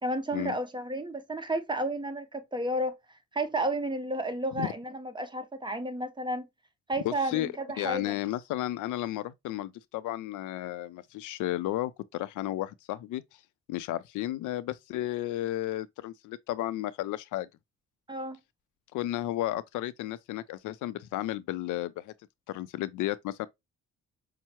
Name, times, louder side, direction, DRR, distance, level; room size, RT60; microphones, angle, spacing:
voice 1, 0.0-6.5 6.9-8.2 18.1-18.4, right 1 dB, 15° right, 0.8 m, -32 dB
voice 2, 7.0-13.2 13.7-17.5 18.9-22.1 22.5-23.5, left 14 dB, 80° left, 0.5 m, -33 dB
5.5 x 2.0 x 2.9 m
cardioid pair, 90°, 30 cm